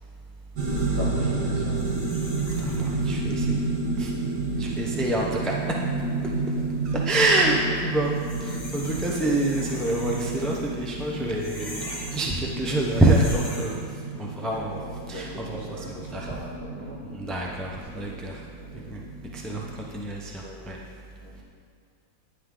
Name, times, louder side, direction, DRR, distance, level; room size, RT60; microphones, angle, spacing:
sound 1, 0.6-14.0, left 1 dB, 25° left, 1.5 m, -43 dB
sound 2, 0.6-19.9, right 3 dB, 65° right, 1.9 m, -30 dB
voice 1, 0.7-1.9 4.5-4.8 6.8-7.0 8.9-9.2 14.4-17.0 17.3-17.4 17.9-18.2 18.5-18.9 19.4-19.5 20.4-20.7 21.2-21.4, equal, 35° right, -8 dB, 2.7 m, -41 dB
voice 2, 2.6-3.6 4.0-4.1 4.6-5.5 6.8-13.9 14.2-14.8 15.1-15.8 16.1-16.3 17.1-18.4 18.9-19.0 19.3-19.7 19.9-20.3 20.7-20.8, right 1 dB, ahead, -2 dB, 0.3 m, -26 dB
10.5 x 9.9 x 3.8 m, 2.2 s
omnidirectional pair, 2.0 m